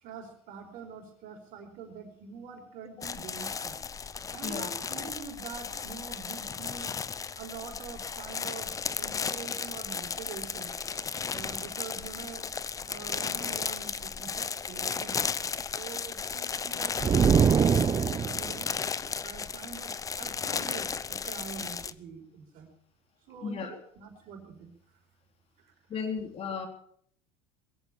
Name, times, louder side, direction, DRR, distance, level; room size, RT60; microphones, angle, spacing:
voice 1, 0.0-3.8 4.3-6.9 7.4-8.7 9.0-10.7 11.3-12.4 12.9-15.3 15.7-18.7 19.2-22.7 23.3-24.7 25.6-25.7, right 6 dB, 60° right, 3 dB, 4.7 m, -45 dB
sound 1, 3.0-21.9, left 6 dB, 20° left, 0.6 m, -35 dB
sound 2, 17.0-18.6, right 7 dB, 25° right, 0.6 m, -23 dB
voice 2, 23.4-23.8 25.9-26.7, left 5 dB, 40° left, 5 dB, 3.6 m, -34 dB
21.5 x 8.2 x 6.9 m, 0.62 s
supercardioid pair, 110°, 16 cm